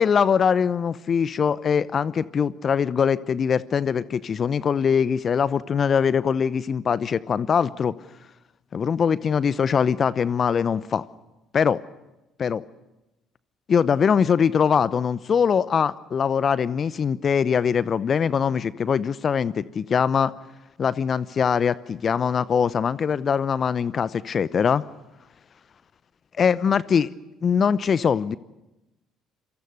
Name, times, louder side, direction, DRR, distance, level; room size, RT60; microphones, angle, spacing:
voice 1, 0.0-7.9 8.7-11.1 11.5-11.8 12.4-12.6 13.7-20.3 20.8-24.8 26.4-27.1 27.4-28.4, left 7 dB, 40° left, 18 dB, 0.8 m, -22 dB
27.5 x 24.0 x 6.7 m, 0.97 s
hypercardioid pair, 55°, 0 cm